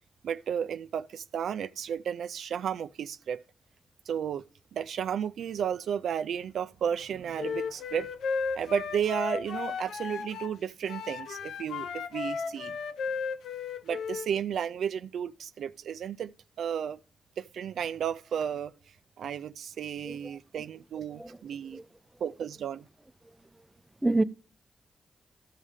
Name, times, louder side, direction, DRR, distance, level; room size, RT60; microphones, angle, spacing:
voice 1, 0.2-3.4 4.1-4.4 4.7-8.1 8.6-12.8 13.8-17.0 17.4-18.7 19.2-21.8 22.2-22.9, right 8 dB, 85° right, 0.3 m, -33 dB
Wind instrument woodwind instrument, 7.4-10.6 10.9-14.3, left 5 dB, 85° left, 0.5 m, -34 dB
voice 2, 20.0-20.4 21.1-21.4 21.7-21.9 24.0-24.2, right 2 dB, 15° right, 0.6 m, -28 dB
13.5 x 5.6 x 4.9 m
cardioid pair, 65°, 0 cm